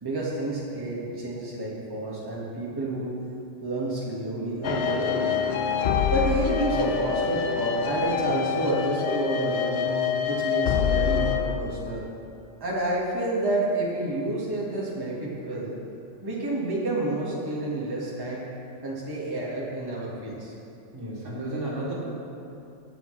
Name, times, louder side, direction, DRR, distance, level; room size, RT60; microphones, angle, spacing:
voice 1, 0.0-3.1 3.6-5.6 6.1-9.8 10.3-12.0 12.6-15.7 16.2-18.4 18.8-20.5, right 1 dB, 20° right, -6 dB, 1.5 m, -29 dB
sound 1, 4.6-11.6, left 7 dB, 60° left, 0.8 m, -26 dB
voice 2, 20.9-21.9, right 1 dB, 70° right, -6 dB, 2.2 m, -32 dB
12.0 x 8.4 x 3.2 m, 2.7 s
omnidirectional pair, 1.3 m